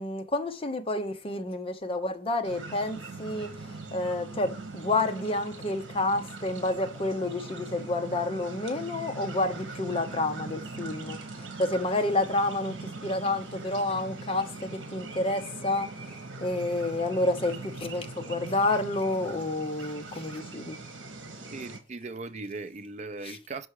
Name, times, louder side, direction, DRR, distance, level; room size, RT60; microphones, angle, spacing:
voice 1, 0.0-20.8 23.2-23.4, left 2 dB, 30° left, 0.7 m, -29 dB
sound 1, 2.4-21.8, right 3 dB, 65° right, 1.4 m, -41 dB
voice 2, 21.5-23.7, right 3 dB, 35° right, 0.5 m, -38 dB
6.1 x 4.6 x 4.7 m
head